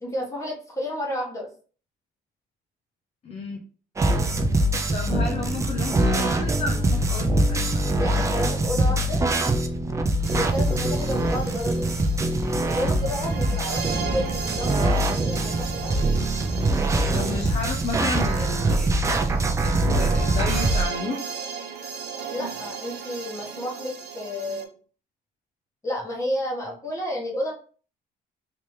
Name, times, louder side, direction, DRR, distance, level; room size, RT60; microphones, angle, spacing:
voice 1, 0.0-1.5 8.0-9.2 10.3-11.9 12.6-16.0 22.3-24.7 25.8-27.5, left 1 dB, 20° left, -1 dB, 1.2 m, -31 dB
voice 2, 3.2-3.6 4.9-7.8 17.1-21.3, left 3 dB, 35° left, 2 dB, 0.6 m, -32 dB
sound 1, 4.0-20.8, right 1 dB, 20° right, 0.4 m, -23 dB
sound 2, 10.2-24.6, right 6 dB, 75° right, 0.7 m, -36 dB
3.3 x 2.9 x 3.1 m, 0.41 s
cardioid pair, 110°, 17 cm